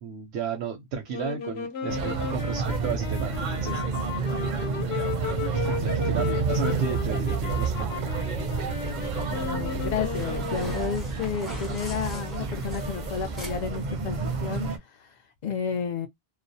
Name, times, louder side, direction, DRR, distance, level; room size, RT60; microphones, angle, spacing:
voice 1, 0.0-3.8 5.6-8.2, right 6 dB, 90° right, 0.8 m, -33 dB
sound 1, 1.1-11.1, left 6 dB, 80° left, 0.9 m, -35 dB
sound 2, 1.9-14.8, right 5 dB, 55° right, 0.6 m, -30 dB
sound 3, 8.7-14.7, left 1 dB, ahead, 0.6 m, -38 dB
voice 2, 9.1-15.1 15.4-16.1, left 7 dB, 55° left, 0.6 m, -32 dB
2.3 x 2.0 x 2.6 m
omnidirectional pair, 1.1 m